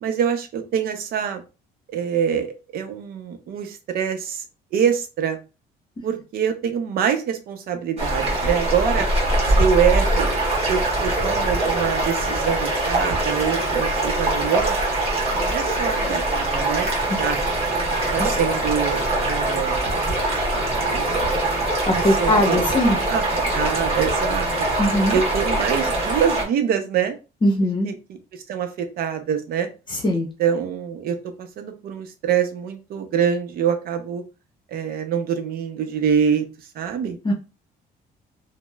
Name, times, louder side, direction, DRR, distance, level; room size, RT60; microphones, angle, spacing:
voice 1, 0.0-1.4 1.9-4.4 4.7-5.4 6.0-9.1 9.5-10.3 10.6-14.8 15.3-16.9 17.2-17.4 18.1-19.9 20.5-21.2 21.9-22.7 23.1-24.5 25.1-27.1 27.6-27.9 28.3-29.7 30.1-34.2 34.7-36.5 36.7-37.2, right 8 dB, 65° right, 7 dB, 0.6 m, -25 dB
sound 1, 8.0-26.4, right 2 dB, 35° right, 1.1 m, -22 dB
voice 2, 21.9-23.0 24.8-25.2 27.4-27.9 30.0-30.3 37.2-37.3, left 1 dB, 30° left, 2 dB, 0.7 m, -20 dB
2.9 x 2.0 x 2.2 m, 0.30 s
cardioid pair, 110°, 17 cm